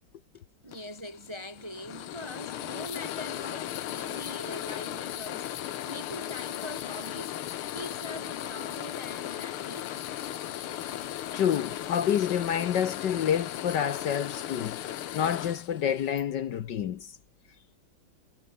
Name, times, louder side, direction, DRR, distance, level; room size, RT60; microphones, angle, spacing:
voice 1, 0.6-9.9, left 1 dB, 15° right, 1.2 m, -43 dB
sound 1, 0.7-16.2, left 12 dB, 85° left, 1.9 m, -37 dB
sound 2, 3.5-12.5, right 3 dB, 80° right, 7.4 m, -55 dB
voice 2, 11.3-17.1, left 9 dB, 60° left, 1.4 m, -28 dB
omnidirectional pair, 2.4 m